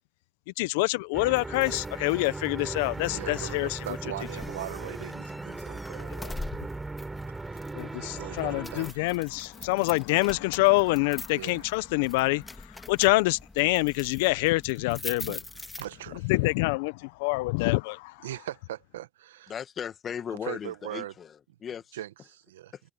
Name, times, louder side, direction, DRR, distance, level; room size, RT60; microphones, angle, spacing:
voice 1, 0.6-3.8 6.1-6.3 7.7-15.4 16.2-18.3, left 23 dB, 80° left, 1.0 m, -26 dB
sound 1, 1.1-8.9, right 3 dB, 20° right, 7.8 m, -38 dB
sound 2, 1.4-16.3, left 2 dB, 20° left, 2.8 m, -44 dB
voice 2, 3.1-6.4 7.5-9.1 11.3-11.7 15.3-15.4 15.8-16.3 18.2-19.5 20.4-21.1 21.9-22.7, right 13 dB, 85° right, 1.3 m, -40 dB
voice 3, 19.5-22.0 22.7-22.8, left 8 dB, 50° left, 1.7 m, -37 dB
hypercardioid pair, 50°, 0 cm